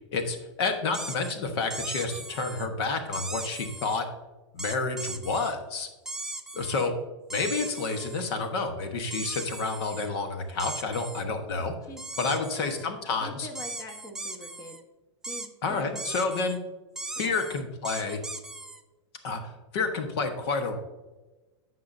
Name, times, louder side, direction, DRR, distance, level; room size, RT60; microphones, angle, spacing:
voice 1, 0.1-4.0 4.5-5.9 6.5-6.9 7.3-11.7 12.2-13.5 15.6-16.6 17.2-18.2 19.2-20.8, left 4 dB, 60° left, 6 dB, 1.3 m, -29 dB
sound 1, 0.9-1.3 1.7-2.7 3.1-4.0 4.6-5.5 6.1-6.9 7.3-8.3 9.1-10.1 10.6-11.2 12.0-12.9 13.5-14.8 15.2-15.5 16.0-16.6 17.0-18.8, right 2 dB, 5° right, 0.5 m, -38 dB
voice 2, 11.9-14.8 15.3-16.0 17.2-17.6, left 1 dB, 25° left, 5 dB, 1.2 m, -45 dB
14.5 x 5.8 x 2.7 m, 1.2 s
hypercardioid pair, 130°, 15 cm